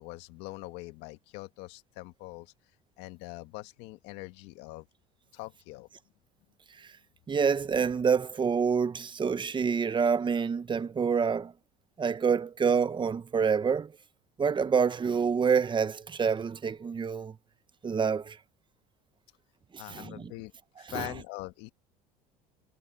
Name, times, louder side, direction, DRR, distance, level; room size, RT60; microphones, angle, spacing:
voice 1, 0.0-2.5 3.0-4.8 5.3-5.9 19.8-20.5 20.8-21.7, left 20 dB, 75° left, 1.7 m, -43 dB
voice 2, 7.3-11.5 12.0-13.9 14.4-17.3 17.8-18.4 19.9-20.3 20.9-21.1, right 6 dB, 25° right, 1.1 m, -27 dB
supercardioid pair, 95°, 18 cm